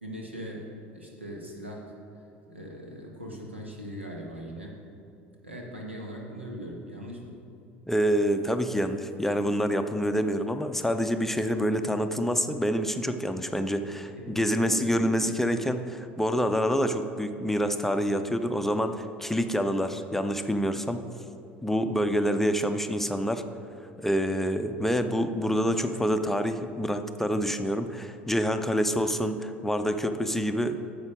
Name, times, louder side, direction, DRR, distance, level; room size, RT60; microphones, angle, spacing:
voice 1, 0.0-4.7 5.4-7.3 14.1-15.3, right 1 dB, 90° right, -1 dB, 1.3 m, -40 dB
voice 2, 7.9-21.0 21.6-23.4 24.0-30.8, equal, 5° left, 8 dB, 0.5 m, -27 dB
9.5 x 7.1 x 5.0 m, 2.7 s
figure-of-eight pair, 70°, 6 cm